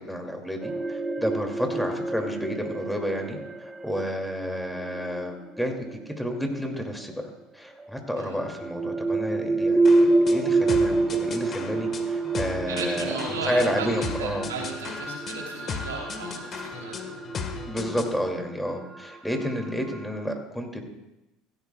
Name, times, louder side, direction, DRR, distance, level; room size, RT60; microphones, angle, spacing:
voice 1, 0.0-7.1 7.5-14.5 17.7-20.8, equal, ahead, 2 dB, 2.6 m, -30 dB
sound 1, 0.6-6.6 7.8-20.2, right 2 dB, 20° right, 1.1 m, -28 dB
sound 2, 9.8-18.2, left 5 dB, 40° left, 1.5 m, -36 dB
voice 2, 12.7-17.0, right 4 dB, 90° right, 0 dB, 3.3 m, -35 dB
16.0 x 14.5 x 2.4 m, 0.93 s
hypercardioid pair, 80°, 0 cm